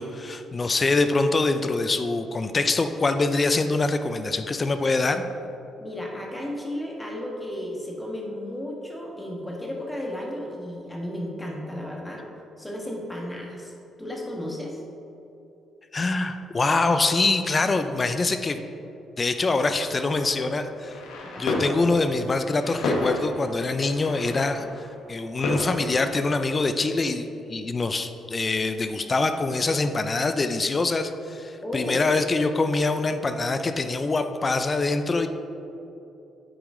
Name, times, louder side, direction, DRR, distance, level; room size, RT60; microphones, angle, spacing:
voice 1, 0.0-5.2 15.9-18.6 19.2-20.9 21.4-35.3, left 3 dB, 30° left, 9 dB, 0.4 m, -24 dB
voice 2, 5.8-12.2 12.6-13.7 14.0-14.8 21.2-21.6 31.6-32.0, left 1 dB, 10° left, -2 dB, 1.5 m, -34 dB
sound 1, 20.0-26.5, left 2 dB, 90° left, 1.0 m, -32 dB
8.6 x 4.8 x 3.8 m, 2.9 s
cardioid pair, 90°, 0 cm